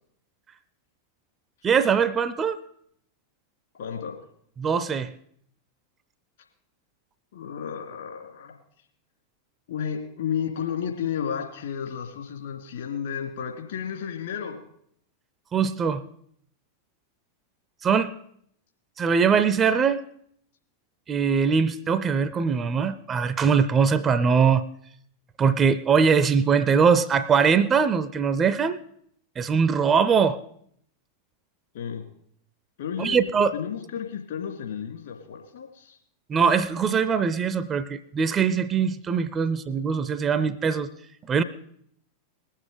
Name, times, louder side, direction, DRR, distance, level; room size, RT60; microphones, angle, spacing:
voice 1, 1.6-2.6 4.6-5.1 15.5-16.0 17.8-18.1 19.0-20.0 21.1-24.7 25.4-28.8 29.4-30.4 33.0-33.5 36.3-40.9 41.3-41.4, right 6 dB, 25° right, 0.6 m, -22 dB
voice 2, 3.8-4.2 7.3-8.6 9.7-14.6 31.7-32.0 32.8-33.2 33.5-36.0, left 8 dB, 60° left, 2.5 m, -32 dB
20.0 x 7.4 x 5.1 m
figure-of-eight pair, 90°, 0 cm